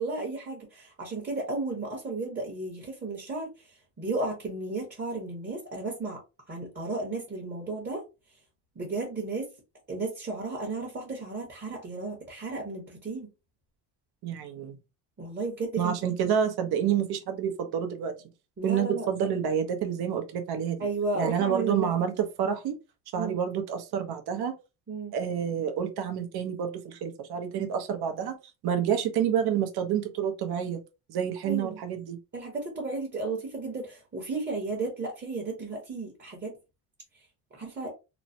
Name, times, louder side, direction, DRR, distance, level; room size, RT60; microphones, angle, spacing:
voice 1, 0.0-3.5 4.0-6.2 6.5-8.0 8.8-9.5 9.9-13.3 15.2-15.9 18.6-19.1 20.8-21.9 23.2-23.3 24.9-25.1 31.4-31.8 32.3-36.5 37.5-37.9, right 3 dB, 25° right, 1.0 m, -33 dB
voice 2, 14.2-14.8 15.8-18.1 18.6-20.9 21.1-22.7 23.1-24.5 25.1-28.4 28.6-30.8 31.1-32.2, right 8 dB, 60° right, 0.8 m, -28 dB
3.1 x 2.0 x 2.6 m
cardioid pair, 100°, 44 cm